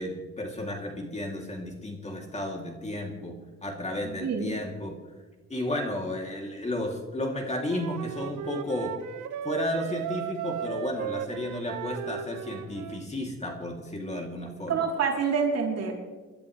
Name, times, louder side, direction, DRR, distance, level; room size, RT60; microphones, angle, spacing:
voice 1, 0.0-5.0 5.5-8.9 9.4-14.8, left 1 dB, 20° left, 1 dB, 3.0 m, -33 dB
voice 2, 4.0-4.6 14.7-15.9, right 6 dB, 55° right, -1 dB, 3.8 m, -27 dB
Wind instrument woodwind instrument, 7.7-13.0, right 9 dB, 80° right, 0.9 m, -36 dB
25.5 x 12.0 x 3.3 m, 1.3 s
cardioid pair, 90°, 30 cm